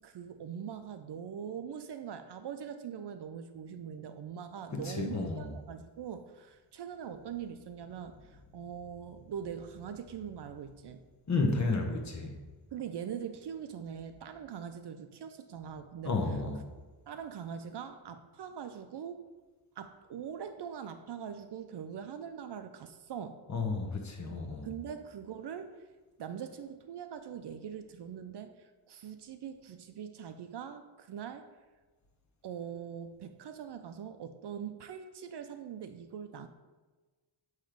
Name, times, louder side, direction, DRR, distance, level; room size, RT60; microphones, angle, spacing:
voice 1, 0.0-11.0 12.7-16.2 17.1-19.2 19.8-23.4 24.6-25.8 26.2-31.5 32.4-36.5, right 8 dB, 55° right, 9 dB, 0.5 m, -42 dB
voice 2, 4.7-5.5 11.3-12.4 16.0-16.6 23.5-24.7, left 3 dB, 35° left, 3 dB, 1.0 m, -32 dB
7.6 x 3.2 x 5.0 m, 1.3 s
wide cardioid pair, 120°, 49 cm